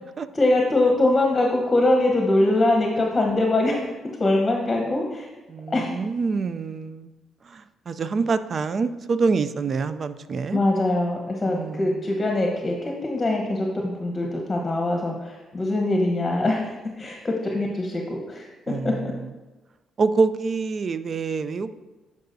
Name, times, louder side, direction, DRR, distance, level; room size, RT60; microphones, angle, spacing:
voice 1, 0.3-3.8 4.2-5.3 5.7-5.9 10.5-18.5 18.8-18.9, left 2 dB, 25° left, 1 dB, 1.0 m, -23 dB
voice 2, 5.5-7.1 7.5-10.6 11.4-12.0 18.7-19.0 20.0-21.7, right 4 dB, 45° right, 13 dB, 0.4 m, -26 dB
11.0 x 4.8 x 2.7 m, 1.2 s
cardioid pair, 90°, 0 cm